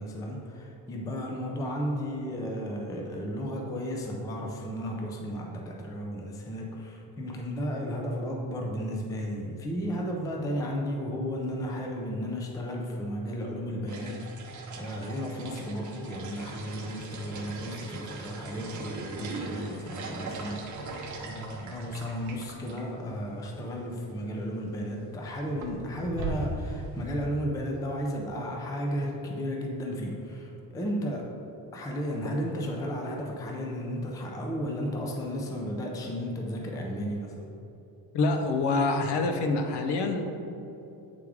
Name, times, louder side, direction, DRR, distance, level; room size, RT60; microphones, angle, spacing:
voice 1, 0.0-20.8 21.2-31.3 31.7-37.5, equal, 10° left, 0 dB, 0.4 m, -34 dB
sound 1, 13.9-22.8 23.1-23.2 23.4-23.5 24.6-24.8 25.2-27.3, right 3 dB, 40° right, 0.7 m, -39 dB
voice 2, 38.1-40.4, left 3 dB, 65° left, 5 dB, 0.8 m, -26 dB
8.4 x 3.6 x 4.7 m, 2.9 s
cardioid pair, 170°, 45 cm